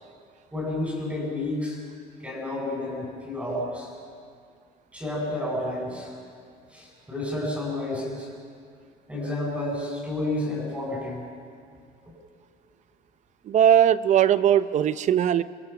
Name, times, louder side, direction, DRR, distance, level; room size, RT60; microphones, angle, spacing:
voice 1, 0.5-1.8 2.2-3.9 4.9-6.1 6.7-8.3 9.1-11.2, left 1 dB, 10° right, -2 dB, 7.9 m, -30 dB
voice 2, 13.5-15.4, right 10 dB, 45° right, 14 dB, 0.7 m, -19 dB
29.5 x 23.0 x 5.9 m, 2.3 s
cardioid pair, 145°, 16 cm